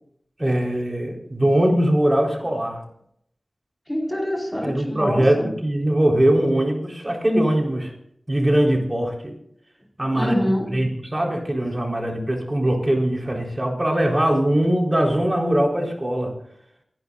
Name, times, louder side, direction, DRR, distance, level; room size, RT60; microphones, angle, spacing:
voice 1, 0.4-2.8 4.6-7.9 8.3-9.3 10.0-10.4 10.7-16.3, right 1 dB, 30° right, 4.0 m, -21 dB
voice 2, 3.9-5.5 10.1-10.9, equal, 10° left, 4.5 m, -25 dB
28.5 x 11.0 x 2.5 m
cardioid pair, 40°, 0 cm